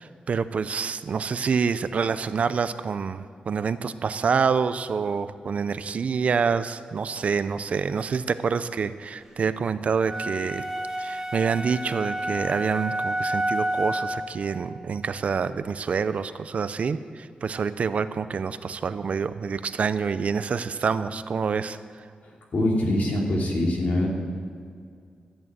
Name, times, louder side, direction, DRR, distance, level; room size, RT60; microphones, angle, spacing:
voice 1, 0.0-10.6 11.0-21.8, right 5 dB, 50° right, 13 dB, 0.5 m, -27 dB
sound 1, 10.0-14.3, right 1 dB, 15° right, 1.2 m, -29 dB
voice 2, 22.2-24.1, left 1 dB, 60° left, -2 dB, 3.0 m, -24 dB
13.5 x 8.9 x 8.9 m, 2.2 s
wide cardioid pair, 175°, 3 cm